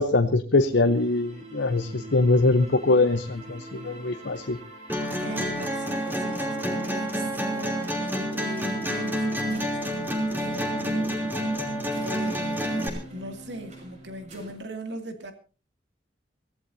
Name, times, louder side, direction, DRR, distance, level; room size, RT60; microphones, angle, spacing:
voice 1, 0.0-4.6, left 2 dB, 70° left, 0.8 m, -22 dB
sound 1, 0.7-14.5, right 1 dB, 40° right, 6.4 m, -45 dB
sound 2, 4.9-12.9, equal, 10° right, 3.1 m, -28 dB
voice 2, 5.2-11.7 12.0-15.3, equal, 70° right, 2.5 m, -39 dB
24.5 x 16.0 x 2.7 m
head